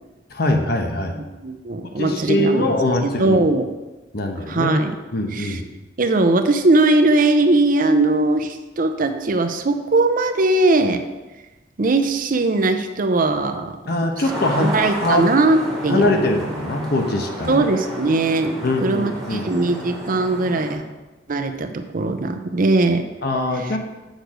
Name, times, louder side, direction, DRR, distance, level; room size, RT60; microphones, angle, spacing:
voice 1, 0.3-1.2 1.9-3.4 4.1-4.7 5.1-5.7 13.9-15.3 15.8-17.7 18.6-19.5 23.2-23.8, left 1 dB, 60° left, 3 dB, 1.0 m, -22 dB
voice 2, 1.4-2.7 3.0-3.6 4.5-4.9 5.3-5.6 6.0-11.0 11.8-13.8 14.6-16.2 17.5-20.8 21.3-23.1, right 2 dB, 50° right, 8 dB, 0.6 m, -19 dB
sound 1, 14.2-20.7, right 1 dB, ahead, 2.8 m, -31 dB
7.9 x 6.5 x 5.0 m, 1.1 s
head